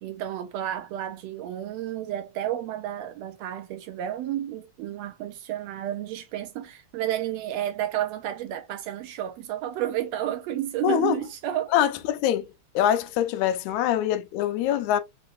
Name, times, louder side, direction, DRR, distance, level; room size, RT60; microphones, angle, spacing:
voice 1, 0.0-11.7, right 12 dB, 80° right, 1.6 m, -31 dB
voice 2, 10.8-11.2 11.7-12.5 12.8-15.0, left 11 dB, 90° left, 2.0 m, -24 dB
5.4 x 3.0 x 2.5 m
omnidirectional pair, 3.3 m